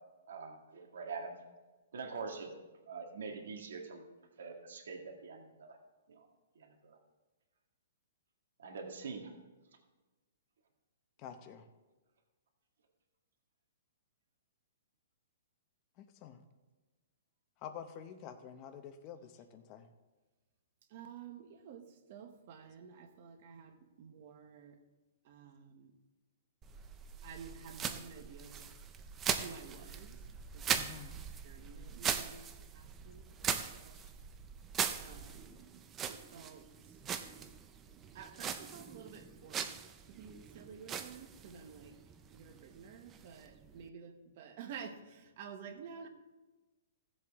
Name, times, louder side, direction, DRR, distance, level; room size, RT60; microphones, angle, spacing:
voice 1, 0.3-1.4 1.9-2.5 2.9-4.0 4.4-5.8 6.1-6.3 6.6-7.0 8.6-9.3, right 4 dB, 70° right, 2 dB, 1.8 m, -44 dB
voice 2, 11.2-11.7 16.0-16.4 17.6-19.9 30.7-31.1, left 8 dB, 25° left, 8 dB, 0.7 m, -48 dB
voice 3, 20.9-24.8 25.2-25.9 27.2-28.7 29.4-30.2 30.5-30.9 31.4-32.5 32.7-34.1 35.0-35.6 36.1-36.9 38.1-39.8 40.1-42.0 42.3-46.1, right 6 dB, 35° right, 7 dB, 1.1 m, -51 dB
sound 1, 26.6-43.9, right 7 dB, 15° right, 0.4 m, -41 dB
16.5 x 7.5 x 3.6 m, 1.2 s
hypercardioid pair, 175°, 0 cm